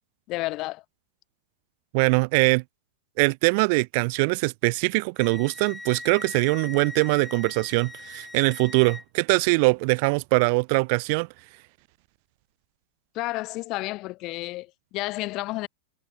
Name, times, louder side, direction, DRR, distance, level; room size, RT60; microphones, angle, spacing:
voice 1, 0.3-0.8 13.1-15.7, left 20 dB, 35° left, 1.0 m, -31 dB
voice 2, 1.9-2.6 3.2-11.3, right 31 dB, 50° right, 0.6 m, -22 dB
Wind instrument woodwind instrument, 5.2-9.0, left 2 dB, 5° left, 2.4 m, -40 dB
supercardioid pair, 150°, 0 cm